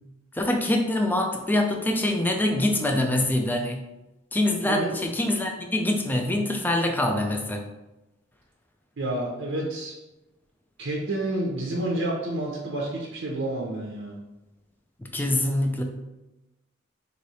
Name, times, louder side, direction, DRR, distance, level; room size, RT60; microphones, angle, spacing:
voice 1, 0.3-3.8 4.3-7.6 15.0-15.8, left 1 dB, 10° left, 3 dB, 0.4 m, -24 dB
voice 2, 9.0-9.9 10.8-14.2, right 1 dB, 65° right, -3 dB, 0.7 m, -29 dB
3.3 x 2.7 x 4.1 m, 1.0 s
head